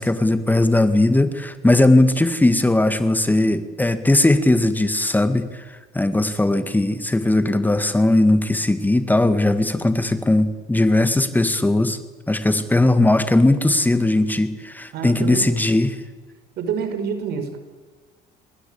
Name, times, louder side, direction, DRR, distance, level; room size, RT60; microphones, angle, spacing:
voice 1, 0.0-5.6 5.9-12.0 12.3-16.0, left 2 dB, 10° left, 10 dB, 1.9 m, -18 dB
voice 2, 14.9-15.6 16.6-17.6, right 6 dB, 75° right, 9 dB, 4.8 m, -27 dB
28.0 x 21.5 x 8.7 m, 1.3 s
cardioid pair, 110°, 17 cm